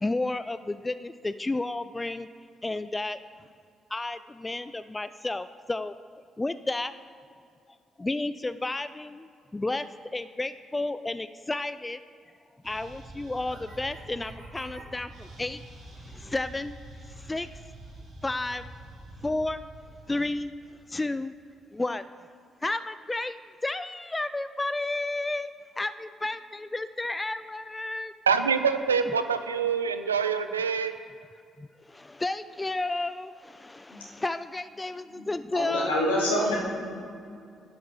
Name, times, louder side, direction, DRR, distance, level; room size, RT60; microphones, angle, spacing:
voice 1, 0.0-2.3 2.6-3.2 3.9-5.9 6.4-6.9 8.0-9.9 10.1-12.0 12.6-15.6 16.0-16.8 17.1-17.5 18.2-18.6 19.2-19.6 20.1-21.3 21.7-22.0 22.6-25.5 25.8-28.1 31.6-35.9, left 2 dB, 20° left, 13 dB, 0.3 m, -32 dB
sound 1, 12.6-21.2, right 2 dB, 55° right, 2.0 m, -46 dB
voice 2, 28.3-30.9, right 6 dB, 80° right, 10 dB, 0.4 m, -25 dB
voice 3, 35.5-36.5, left 1 dB, 80° left, -6 dB, 2.4 m, -26 dB
10.5 x 6.1 x 6.7 m, 2.4 s
figure-of-eight pair, 40°, 0 cm